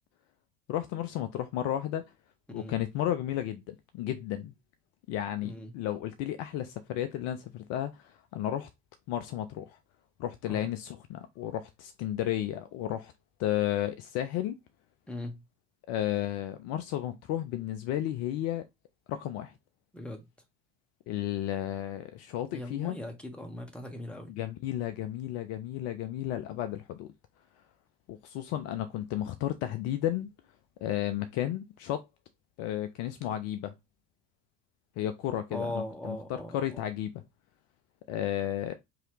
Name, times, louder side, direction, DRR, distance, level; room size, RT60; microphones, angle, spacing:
voice 1, 0.7-2.0 2.5-4.5 5.1-8.7 9.1-9.8 10.2-13.1 13.4-14.5 15.9-18.6 19.1-19.5 21.1-23.0 24.4-27.1 28.1-30.3 30.8-32.0 32.6-33.7 35.0-36.2 36.5-37.1 38.1-38.7, left 12 dB, 45° left, 0.5 m, -33 dB
voice 2, 5.4-5.7 10.4-10.7 15.1-15.4 19.9-20.2 22.5-24.3 35.5-36.8, left 1 dB, 5° left, 0.9 m, -39 dB
3.8 x 2.8 x 3.2 m
figure-of-eight pair, 75°, 37 cm